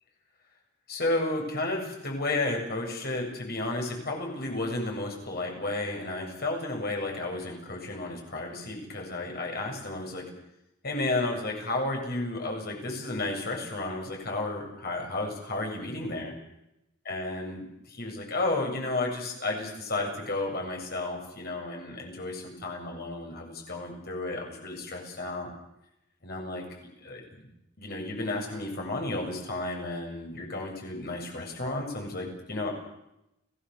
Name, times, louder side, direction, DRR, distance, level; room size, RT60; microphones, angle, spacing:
voice 1, 0.9-10.3 10.8-16.3 17.0-25.5 26.2-26.6 27.0-27.5 27.8-32.7, left 2 dB, 50° left, 1 dB, 7.6 m, -32 dB
29.5 x 18.0 x 7.1 m, 0.86 s
head